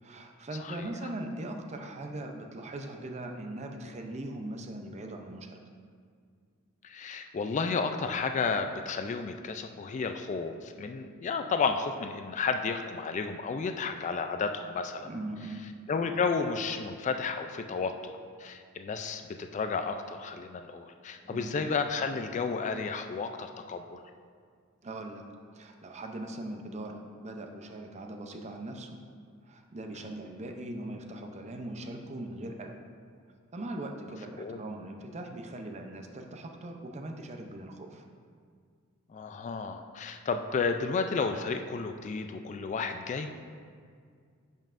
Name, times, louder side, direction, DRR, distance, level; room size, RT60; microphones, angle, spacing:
voice 1, 0.0-5.6 15.0-15.6 21.2-21.6 24.8-25.2 25.5-29.0 29.4-32.7 33.5-38.0, right 1 dB, 30° right, 4 dB, 0.5 m, -40 dB
voice 2, 6.8-15.1 15.9-24.0 29.9-30.1 34.4-34.6 39.1-43.3, left 5 dB, 35° left, 6 dB, 0.3 m, -32 dB
10.5 x 5.4 x 2.5 m, 2.1 s
head